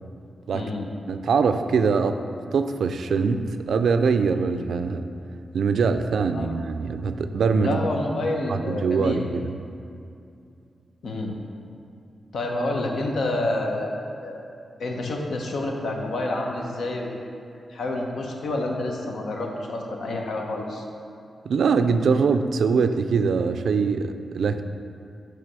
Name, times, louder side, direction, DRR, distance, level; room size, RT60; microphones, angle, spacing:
voice 1, 0.5-0.9 6.3-6.5 7.6-9.3 11.0-11.4 12.3-14.0 14.2-14.4 14.8-17.1 17.7-20.8, left 2 dB, 80° left, 0 dB, 1.0 m, -28 dB
voice 2, 1.1-2.2 2.5-5.1 5.5-7.8 8.5-9.5 21.5-24.6, right 5 dB, 85° right, 9 dB, 0.4 m, -23 dB
9.1 x 3.4 x 6.8 m, 2.5 s
wide cardioid pair, 175°, 0 cm